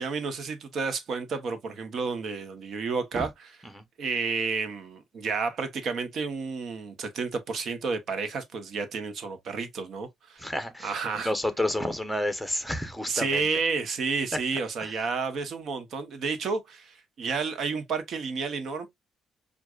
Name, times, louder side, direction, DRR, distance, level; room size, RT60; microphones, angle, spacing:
voice 1, 0.0-3.3 4.0-10.5 10.8-11.3 13.1-18.9, right 4 dB, 60° right, 1.1 m, -31 dB
voice 2, 10.4-13.4 14.8-14.9, left 1 dB, ahead, 1.0 m, -30 dB
6.1 x 2.5 x 2.4 m
cardioid pair, 90°, 0 cm